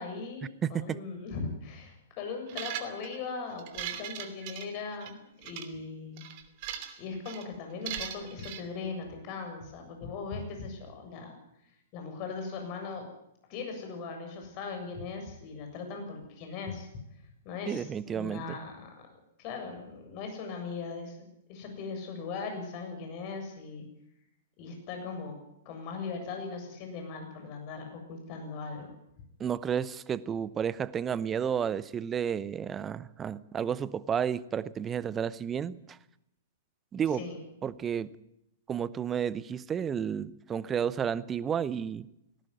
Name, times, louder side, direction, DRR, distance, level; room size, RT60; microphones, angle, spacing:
voice 1, 0.0-6.2 7.0-11.3 11.9-13.0 13.5-16.9 17.4-18.9 19.4-23.8 24.6-25.4 25.6-28.9 37.1-37.4, left 4 dB, 35° left, 4 dB, 7.5 m, -39 dB
voice 2, 0.6-1.0 17.7-18.6 29.4-36.0 36.9-37.2 37.6-38.1 38.7-42.1, right 8 dB, 15° right, 19 dB, 0.8 m, -31 dB
sound 1, 2.5-3.2 3.6-5.1 5.4-5.7 6.2-7.0 7.2-7.4 7.9-8.6, right 10 dB, 40° right, 2.8 m, -39 dB
18.5 x 18.5 x 9.7 m, 0.81 s
figure-of-eight pair, 110°, 0 cm